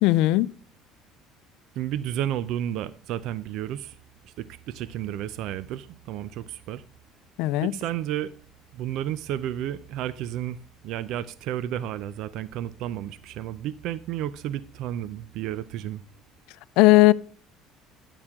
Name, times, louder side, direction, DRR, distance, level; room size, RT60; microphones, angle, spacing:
voice 1, 0.0-0.5 7.4-7.7 16.8-17.1, left 18 dB, 75° left, 0.4 m, -17 dB
voice 2, 1.8-4.0 4.2-6.8 7.6-8.3 8.7-10.6 10.8-16.0, right 11 dB, 70° right, 0.5 m, -32 dB
9.7 x 9.0 x 3.6 m
cardioid pair, 110°, 0 cm